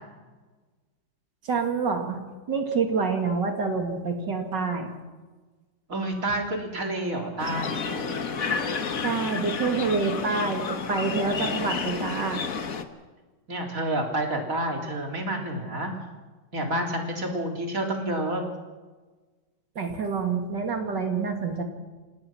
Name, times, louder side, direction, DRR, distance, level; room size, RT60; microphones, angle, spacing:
voice 1, 1.4-2.2 2.5-4.9 9.0-12.4 19.8-21.6, right 4 dB, 65° right, 4 dB, 3.1 m, -27 dB
voice 2, 5.9-7.8 13.5-15.9 16.5-18.4, right 1 dB, 45° right, 2 dB, 4.0 m, -29 dB
sound 1, 7.4-12.8, left 5 dB, 50° left, 1.6 m, -30 dB
27.0 x 18.5 x 6.1 m, 1.3 s
omnidirectional pair, 2.1 m